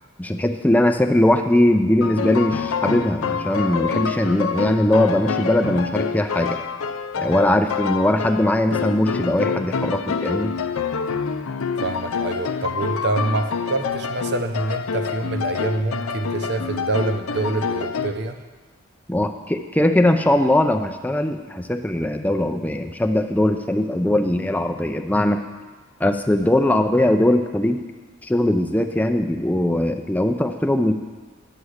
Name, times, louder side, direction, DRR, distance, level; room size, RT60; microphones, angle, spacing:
voice 1, 0.2-6.6 7.2-10.5 19.1-25.4 26.0-27.8 28.2-30.9, left 1 dB, 5° left, 5 dB, 0.5 m, -20 dB
sound 1, 2.0-18.1, left 5 dB, 90° left, 0.5 m, -27 dB
voice 2, 11.8-18.4, right 2 dB, 55° right, 7 dB, 0.7 m, -26 dB
9.9 x 7.0 x 6.5 m, 1.3 s
head